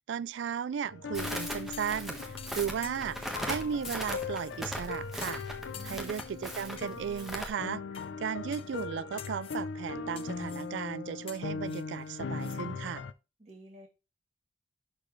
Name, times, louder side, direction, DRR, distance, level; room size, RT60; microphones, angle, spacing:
voice 1, 0.1-2.2 2.5-5.4 5.8-7.8 8.2-13.0, right 7 dB, 80° right, 0.3 m, -35 dB
sound 1, 0.9-13.1, left 4 dB, 80° left, 0.5 m, -40 dB
Crackle, 1.1-7.5, equal, ahead, 1.3 m, -39 dB
sound 2, 1.7-2.0 2.4-3.4 3.8-4.7 5.2-5.5 5.7-6.4 6.8-7.3 7.9-8.1 8.5-8.9 9.2-9.6 10.1-10.7 11.3-12.6 12.9-13.0, left 9 dB, 30° left, 0.4 m, -49 dB
voice 2, 5.7-6.2 13.4-13.9, equal, 35° right, 2.7 m, -51 dB
12.0 x 4.4 x 3.1 m
head